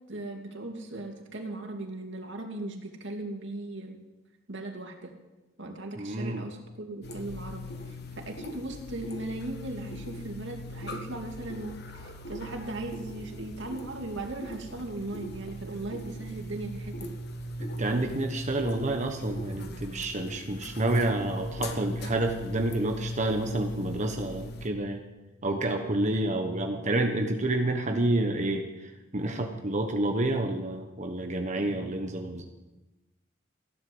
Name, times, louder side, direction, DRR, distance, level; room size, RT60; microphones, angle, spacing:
voice 1, 0.1-4.0 4.5-5.1 5.6-17.2, right 2 dB, 65° right, 3 dB, 2.6 m, -38 dB
voice 2, 6.0-6.4 17.6-25.0 25.4-32.4, right 1 dB, 40° right, 4 dB, 1.1 m, -29 dB
sound 1, 7.0-24.7, equal, 55° left, 1.6 m, -39 dB
15.5 x 11.5 x 7.9 m, 1.1 s
head